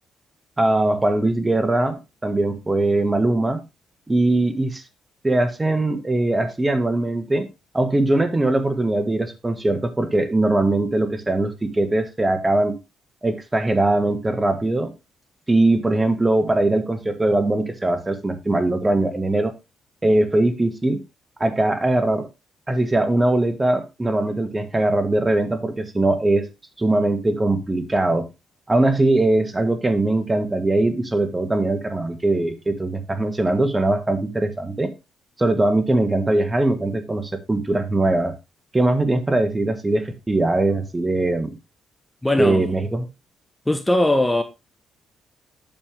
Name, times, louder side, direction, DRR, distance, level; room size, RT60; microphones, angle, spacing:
voice 1, 0.6-3.6 4.1-4.8 5.2-7.5 7.7-12.8 13.2-14.9 15.5-19.5 20.0-21.0 21.4-22.3 22.7-26.5 26.8-28.3 28.7-34.9 35.4-38.3 38.7-41.5 42.4-43.1, right 2 dB, 20° right, 1.6 m, -21 dB
voice 2, 42.2-42.7 43.7-44.4, left 1 dB, 10° left, 1.0 m, -20 dB
9.0 x 6.8 x 3.4 m
supercardioid pair, 65°, 0 cm